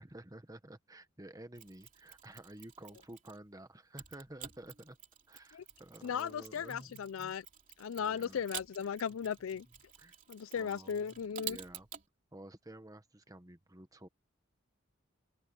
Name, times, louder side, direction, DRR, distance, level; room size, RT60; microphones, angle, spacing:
voice 1, 0.0-5.0 5.3-7.4 8.0-8.4 10.0-10.2 10.5-11.9 12.3-14.1, right 1 dB, 15° right, 1.2 m, -52 dB
Mechanisms, 1.5-3.5 4.0-12.1, right 10 dB, 40° right, 3.0 m, -50 dB
voice 2, 6.0-7.4 7.8-9.7 10.3-11.6, left 7 dB, 80° left, 0.4 m, -37 dB
open air
head